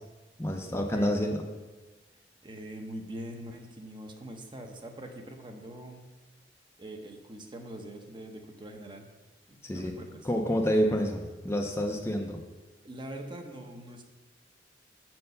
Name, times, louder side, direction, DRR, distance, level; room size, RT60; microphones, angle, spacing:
voice 1, 0.4-1.4 9.6-10.0 10.2-12.4, equal, 15° left, 3 dB, 0.5 m, -28 dB
voice 2, 2.4-6.0 6.8-9.1 9.5-10.3 12.8-14.0, right 1 dB, 25° right, 4 dB, 0.8 m, -43 dB
6.6 x 4.5 x 6.6 m, 1.3 s
head